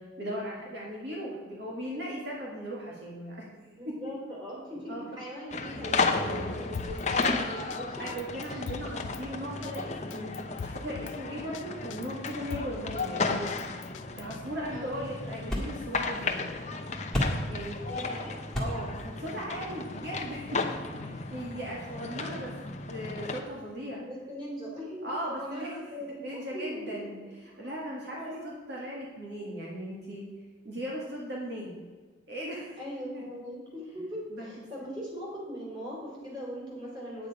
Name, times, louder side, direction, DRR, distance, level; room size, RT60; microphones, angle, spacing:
voice 1, 0.0-3.4 3.9-4.0 4.9-5.0 6.3-6.4 8.0-13.5 14.2-16.4 17.5-17.8 18.6-20.6 21.0-22.5 22.9-24.0 25.0-25.7 26.2-27.2 27.6-28.2 28.4-30.2 30.6-31.7 32.3-32.8 33.1-33.2 34.3-34.5, equal, 60° right, -4 dB, 2.0 m, -37 dB
voice 2, 3.6-8.1 8.5-8.6 14.7-15.1 17.9-18.4 24.0-27.1 27.5-27.7 28.1-28.5 32.8-37.3, equal, 25° right, -5 dB, 3.6 m, -40 dB
sound 1, 5.5-23.4, left 3 dB, 35° left, 0.8 m, -34 dB
Drum kit, 6.7-7.3 7.7-7.8 8.1-9.2 9.6-9.8 10.1-11.2 11.5-11.6 11.9-13.1 13.5-14.4, left 6 dB, 75° left, 0.4 m, -41 dB
sound 2, 13.8-20.9, equal, ahead, 1.7 m, -38 dB
9.4 x 8.3 x 4.9 m, 1.4 s
head